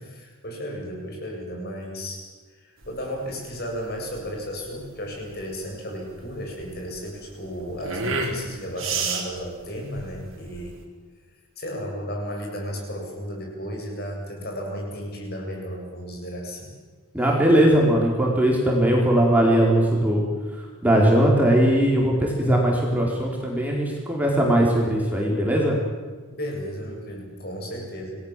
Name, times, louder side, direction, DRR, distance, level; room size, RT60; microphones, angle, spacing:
voice 1, 0.0-2.2 2.6-10.8 11.6-16.7 26.3-28.2, equal, 45° left, 0 dB, 7.9 m, -34 dB
sound 1, 2.8-10.8, right 4 dB, 65° right, 4.4 m, -32 dB
voice 2, 17.1-20.2 20.8-25.8, right 1 dB, 5° right, -2 dB, 4.7 m, -19 dB
29.0 x 20.0 x 7.7 m, 1.4 s
head